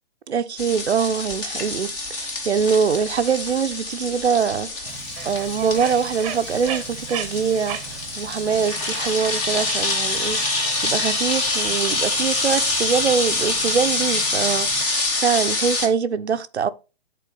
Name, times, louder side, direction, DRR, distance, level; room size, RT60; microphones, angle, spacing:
voice 1, 0.3-5.0 5.2-16.7, right 6 dB, 90° right, 0.6 m, -23 dB
sound 1, 0.6-15.9, left 2 dB, 10° left, 0.4 m, -26 dB
Bird, 4.9-14.9, right 9 dB, 20° right, 0.7 m, -38 dB
8.4 x 3.7 x 3.7 m
figure-of-eight pair, 135°, 32 cm